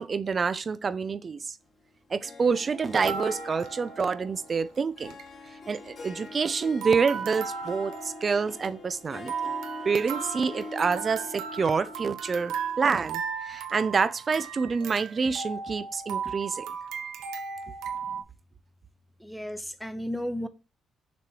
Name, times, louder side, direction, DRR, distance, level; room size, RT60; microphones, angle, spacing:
voice 1, 0.0-1.6 2.1-5.1 5.7-9.3 9.9-16.7, right 5 dB, 40° right, 0.5 m, -27 dB
Harp, 2.2-13.3, left 3 dB, 45° left, 1.9 m, -44 dB
sound 1, 2.8-4.5 4.7-4.8 5.0-5.3 5.7-6.5 6.8-18.2, right 6 dB, 90° right, 0.7 m, -36 dB
voice 2, 19.2-20.5, equal, ahead, 0.8 m, -34 dB
6.8 x 3.1 x 4.7 m
cardioid pair, 90°, 0 cm